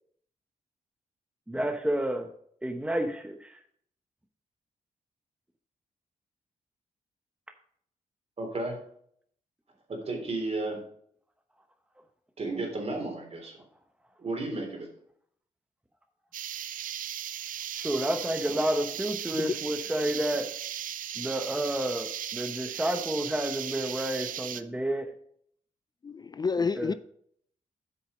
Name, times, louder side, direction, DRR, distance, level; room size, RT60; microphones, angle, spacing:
voice 1, 1.5-2.3 2.6-3.6 17.8-20.5 21.2-25.1 26.8-26.9, right 1 dB, 10° right, 1.0 m, -30 dB
voice 2, 8.4-8.8 9.9-10.8 12.4-13.6 14.2-14.9, right 2 dB, 50° right, 3.5 m, -33 dB
sound 1, 16.3-24.6, right 10 dB, 80° right, 0.5 m, -37 dB
voice 3, 26.0-26.9, left 5 dB, 30° left, 0.4 m, -29 dB
8.2 x 6.3 x 5.1 m
cardioid pair, 75°, 14 cm